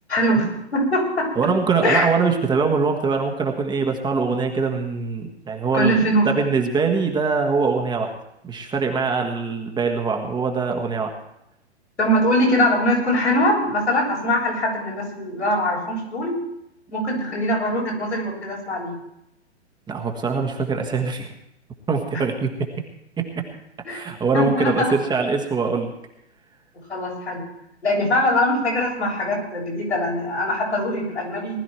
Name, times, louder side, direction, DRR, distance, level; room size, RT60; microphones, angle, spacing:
voice 1, 0.1-1.3 1.8-2.1 5.7-6.3 12.0-16.4 16.9-19.0 23.8-24.0 24.3-24.9 26.9-27.4 27.8-31.6, equal, 85° left, -3 dB, 7.6 m, -22 dB
voice 2, 1.3-6.0 6.2-8.1 8.4-11.1 19.9-21.3 21.9-22.7 23.2-23.5 23.9-25.9, right 4 dB, 15° right, 3 dB, 1.6 m, -23 dB
19.5 x 12.5 x 4.5 m, 0.81 s
figure-of-eight pair, 115°, 33 cm